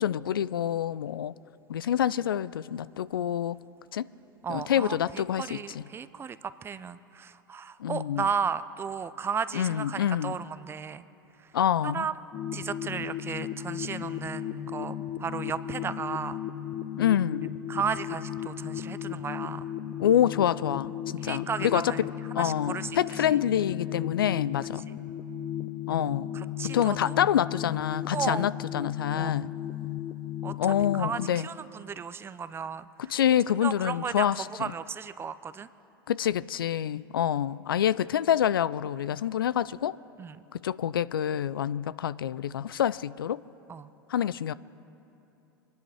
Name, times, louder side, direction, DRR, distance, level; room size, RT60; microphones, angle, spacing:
voice 1, 0.0-1.3 1.7-3.6 3.9-4.1 4.5-5.8 7.8-8.3 9.5-10.4 11.5-12.1 17.0-17.5 20.0-21.9 22.3-24.9 25.9-26.3 26.7-29.5 30.6-31.5 33.1-34.5 36.1-40.0 40.5-43.4 44.1-44.5, left 10 dB, 75° left, 18 dB, 0.4 m, -27 dB
voice 2, 4.4-11.0 11.8-12.1 12.5-16.4 17.7-19.7 21.2-22.0 22.4-22.9 26.3-27.2 28.1-28.4 28.7-28.8 29.2-29.4 30.4-30.5 31.0-32.8 33.6-34.3 34.6-35.7 40.2-40.4 43.7-43.9, right 6 dB, 20° right, 14 dB, 0.5 m, -34 dB
sound 1, 12.3-31.3, left 11 dB, 35° left, 0.9 m, -35 dB
26.0 x 10.5 x 4.8 m, 2.9 s
figure-of-eight pair, 90°, 12 cm